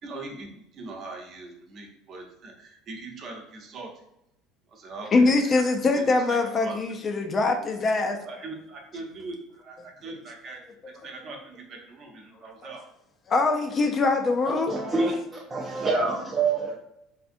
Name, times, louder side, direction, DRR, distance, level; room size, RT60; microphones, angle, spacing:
voice 1, 0.0-4.0 4.7-5.3 5.9-7.0 8.2-10.6 11.0-12.8 15.7-16.1, right 3 dB, 45° right, 0.8 m, -41 dB
voice 2, 5.1-8.2 13.3-14.7, left 3 dB, 35° left, 0.4 m, -23 dB
voice 3, 14.7-16.7, right 3 dB, 25° right, 0.5 m, -26 dB
3.5 x 2.5 x 2.5 m
supercardioid pair, 105°, 0 cm